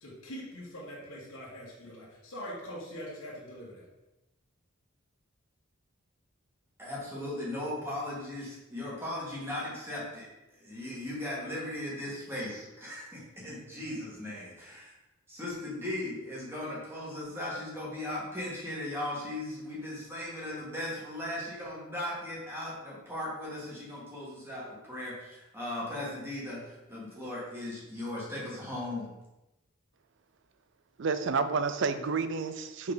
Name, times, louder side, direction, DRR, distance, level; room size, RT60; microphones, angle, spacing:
voice 1, 0.0-3.9, equal, 75° left, -6 dB, 1.7 m, -43 dB
voice 2, 6.8-10.3 10.6-14.9 15.3-29.1, left 1 dB, 10° right, -6 dB, 2.0 m, -37 dB
voice 3, 31.0-32.9, right 4 dB, 60° right, 10 dB, 0.5 m, -30 dB
5.4 x 4.8 x 4.0 m, 0.99 s
head